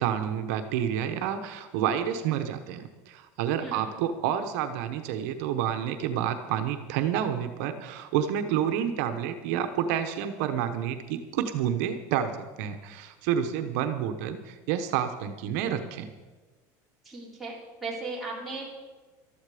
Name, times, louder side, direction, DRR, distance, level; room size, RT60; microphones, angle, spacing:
voice 1, 0.0-16.1, right 9 dB, 65° right, 7 dB, 1.0 m, -29 dB
voice 2, 3.5-3.9 17.0-18.7, right 3 dB, ahead, -7 dB, 3.5 m, -37 dB
14.5 x 12.5 x 5.0 m, 1.3 s
cardioid pair, 165°, 9 cm